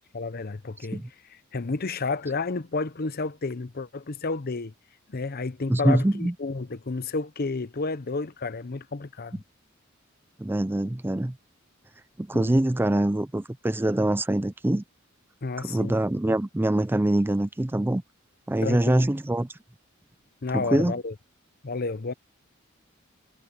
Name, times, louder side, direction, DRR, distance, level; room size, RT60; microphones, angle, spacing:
voice 1, 0.1-1.0 1.5-4.7 5.1-9.4 12.3-12.6 15.4-16.0 18.6-19.1 20.4-21.1 21.6-22.1, left 3 dB, 50° left, 0.8 m, -31 dB
voice 2, 5.7-6.3 10.4-11.3 12.2-14.8 15.6-18.0 18.5-19.5 20.5-20.9, right 1 dB, 10° right, 0.4 m, -24 dB
head